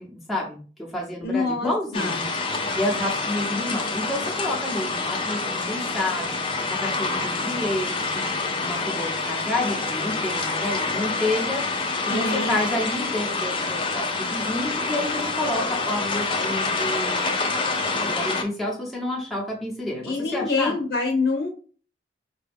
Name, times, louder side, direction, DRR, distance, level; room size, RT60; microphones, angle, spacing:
voice 1, 0.0-2.2 2.8-6.4 6.7-8.3 8.6-11.6 12.1-17.3 18.0-20.7, left 1 dB, ahead, -5 dB, 0.9 m, -29 dB
voice 2, 1.2-2.3 12.1-12.5 20.0-21.5, left 3 dB, 65° left, 0 dB, 0.8 m, -26 dB
sound 1, 1.9-18.4, left 3 dB, 30° left, 0.6 m, -27 dB
5.0 x 2.3 x 3.5 m, 0.38 s
head